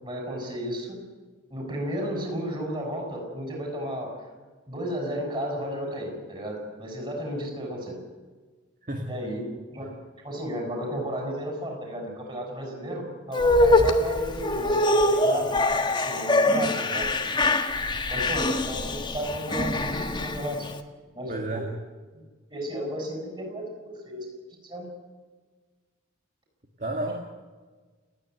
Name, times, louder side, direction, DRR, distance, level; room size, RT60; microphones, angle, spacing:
voice 1, 0.0-1.1 1.5-4.2 4.7-8.0 9.1-9.9 10.2-15.6 15.9-17.1 18.1-20.7 21.1-21.6 22.1-22.2 22.5-24.3 24.6-24.9, equal, 25° right, 1 dB, 6.8 m, -33 dB
sound 1, 13.3-20.7, left 2 dB, 25° left, 1.3 m, -24 dB
voice 2, 21.3-21.7 26.8-27.4, right 1 dB, 40° right, 2 dB, 2.1 m, -32 dB
29.5 x 9.9 x 9.3 m, 1.4 s
head